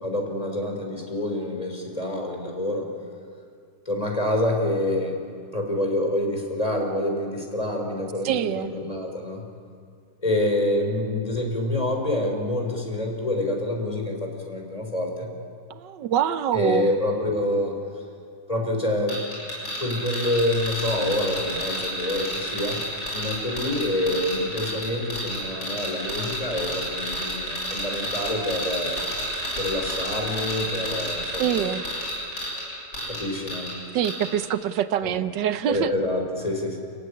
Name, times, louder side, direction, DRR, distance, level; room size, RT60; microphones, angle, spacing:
voice 1, 0.0-2.9 3.9-5.2 5.5-9.4 10.2-15.3 16.5-17.8 18.5-19.2 19.8-22.8 23.1-29.0 29.6-31.8 33.1-33.8 35.0-35.2 35.7-36.8, left 1 dB, 20° left, 2 dB, 4.2 m, -27 dB
voice 2, 8.2-8.8 15.7-16.9 31.4-31.8 33.9-35.9, right 10 dB, 85° right, 12 dB, 1.5 m, -25 dB
sound 1, 19.1-33.8 34.0-34.3, equal, 75° left, 8.0 m, -31 dB
29.5 x 15.0 x 9.8 m, 2.3 s
omnidirectional pair, 1.9 m